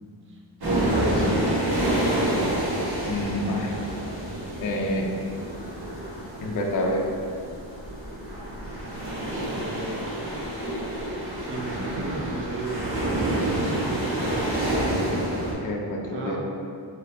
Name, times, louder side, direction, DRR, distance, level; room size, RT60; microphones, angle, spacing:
voice 1, 0.6-1.6 9.0-10.4 11.4-15.0 16.1-16.4, right 2 dB, 30° right, -3 dB, 0.5 m, -34 dB
sound 1, 0.6-15.5, right 1 dB, 50° right, 1.3 m, -28 dB
voice 2, 3.1-3.7 4.6-5.1 6.4-7.1 11.6-12.3 15.5-16.4, left 1 dB, 45° left, 0 dB, 0.5 m, -28 dB
4.1 x 2.9 x 3.2 m, 2.3 s
wide cardioid pair, 110°, 46 cm